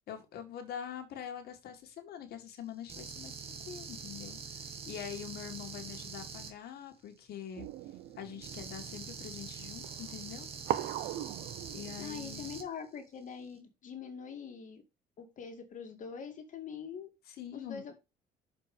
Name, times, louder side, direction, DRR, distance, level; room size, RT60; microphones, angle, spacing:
voice 1, 0.1-7.7 8.2-10.5 11.7-12.4 17.3-17.8, left 9 dB, 70° left, 6 dB, 2.2 m, -44 dB
sound 1, 2.9-6.5 8.4-12.6, right 6 dB, 35° right, 2.1 m, -44 dB
sound 2, 7.6-12.6, right 13 dB, 85° right, 0.8 m, -40 dB
voice 2, 12.0-14.8 15.2-17.1 17.5-18.0, left 6 dB, 50° left, 5 dB, 2.2 m, -43 dB
6.8 x 5.1 x 5.2 m, 0.25 s
cardioid pair, 110°, 17 cm